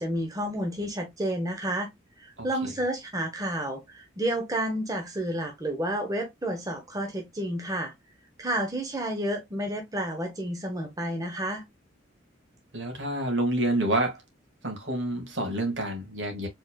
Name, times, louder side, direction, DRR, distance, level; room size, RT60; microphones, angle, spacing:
voice 1, 0.0-1.9 2.2-7.9 8.4-11.6, right 1 dB, 20° right, 0.8 m, -30 dB
voice 2, 12.7-14.2 14.6-16.5, right 1 dB, 70° right, 1.8 m, -28 dB
4.7 x 3.8 x 2.2 m
head